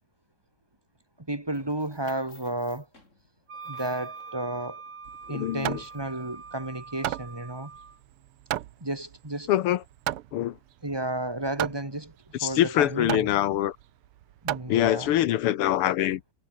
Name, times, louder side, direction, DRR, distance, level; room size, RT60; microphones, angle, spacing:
voice 1, 1.2-2.9 3.7-4.8 5.3-7.7 8.8-9.5 10.8-13.3 14.4-15.1, right 1 dB, 10° right, 1.7 m, -32 dB
sound 1, 1.5-6.2, left 2 dB, 30° left, 5.6 m, -57 dB
Wind instrument woodwind instrument, 3.5-8.0, right 5 dB, 55° right, 3.4 m, -43 dB
Hammer, 5.1-15.3, right 14 dB, 85° right, 1.7 m, -36 dB
voice 2, 5.3-5.8 9.5-9.8 10.3-10.6 12.4-13.8 14.7-16.2, left 13 dB, 90° left, 1.9 m, -24 dB
omnidirectional pair, 2.4 m